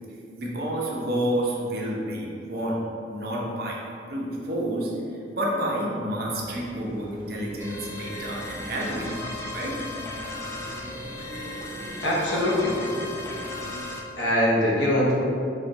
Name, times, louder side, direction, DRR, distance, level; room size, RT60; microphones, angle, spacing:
voice 1, 0.4-2.8 3.1-3.8 4.1-4.9 5.3-9.7, right 1 dB, 55° right, -3 dB, 0.8 m, -29 dB
sound 1, 6.3-13.9, right 1 dB, 10° right, 0.9 m, -41 dB
sound 2, 7.6-14.0, left 2 dB, 15° left, 0.5 m, -36 dB
voice 2, 12.0-13.0 14.2-15.1, left 1 dB, 80° left, -5 dB, 0.9 m, -23 dB
4.1 x 2.7 x 4.8 m, 2.6 s
head